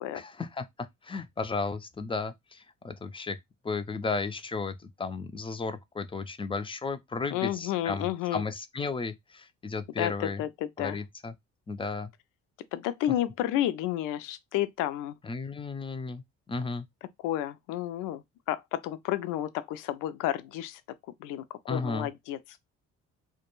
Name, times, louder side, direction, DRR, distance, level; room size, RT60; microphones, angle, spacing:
voice 1, 0.1-3.4 3.6-10.4 10.8-11.3 11.7-12.1 15.2-16.9 21.7-22.1, left 4 dB, 15° left, 0.4 m, -34 dB
voice 2, 7.3-8.4 10.0-11.0 12.7-15.1 17.2-18.2 18.5-20.8 21.2-22.4, left 12 dB, 80° left, 0.5 m, -31 dB
2.3 x 2.2 x 2.9 m
supercardioid pair, 65°, 32 cm